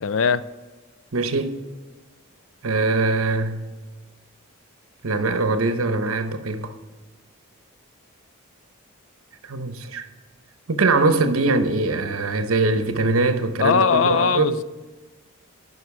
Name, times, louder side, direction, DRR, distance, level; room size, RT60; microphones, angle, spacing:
voice 1, 0.0-0.4 13.6-14.6, left 6 dB, 65° left, 0.4 m, -20 dB
voice 2, 1.1-1.6 2.6-3.6 5.0-6.7 9.5-10.1 10.7-14.6, right 3 dB, 85° right, 0.9 m, -22 dB
11.0 x 5.5 x 4.8 m
head